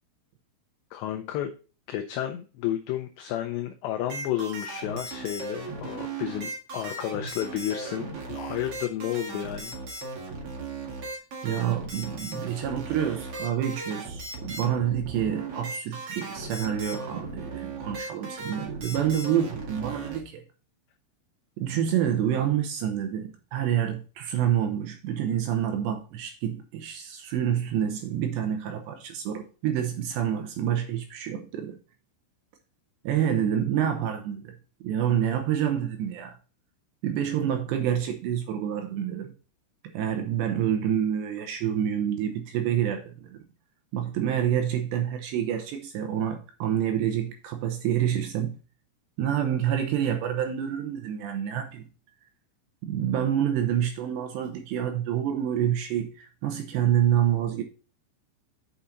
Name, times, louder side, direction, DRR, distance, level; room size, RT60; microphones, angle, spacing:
voice 1, 0.9-1.6 1.9-9.7, left 12 dB, 80° left, 2.6 m, -32 dB
sound 1, 4.1-20.2, right 3 dB, 50° right, 1.7 m, -37 dB
voice 2, 11.4-20.4 21.6-31.8 33.0-34.6 34.8-36.4 37.0-39.3 39.9-43.4 43.9-48.5 49.2-51.9 52.8-57.6, right 10 dB, 75° right, 2.8 m, -27 dB
8.6 x 5.7 x 3.9 m
omnidirectional pair, 5.7 m